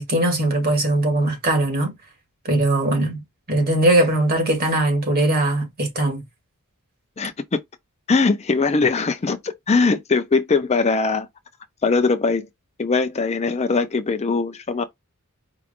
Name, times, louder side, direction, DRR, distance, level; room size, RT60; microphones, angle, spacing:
voice 1, 0.0-1.9 2.5-3.2 3.5-6.2, right 1 dB, 45° right, 1.9 m, -20 dB
voice 2, 8.1-11.3 11.8-12.5 12.8-14.8, left 4 dB, 30° left, 0.5 m, -21 dB
4.8 x 2.3 x 3.5 m
head